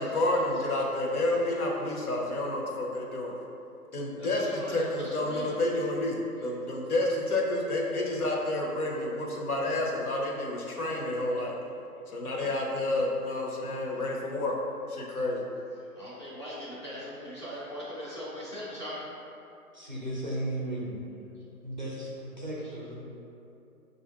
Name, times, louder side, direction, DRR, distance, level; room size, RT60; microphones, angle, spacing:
voice 1, 0.0-3.3 3.9-11.6 12.1-14.5 14.9-15.4, left 2 dB, 70° left, -2 dB, 1.0 m, -29 dB
voice 2, 4.1-5.6 10.7-10.8 11.2-11.3 12.4-12.5 15.9-19.0, equal, 20° left, -9 dB, 0.5 m, -40 dB
voice 3, 19.7-21.0 21.6-22.9, right 1 dB, 35° right, -5 dB, 0.4 m, -35 dB
6.0 x 2.6 x 2.4 m, 2.8 s
hypercardioid pair, 160°, 46 cm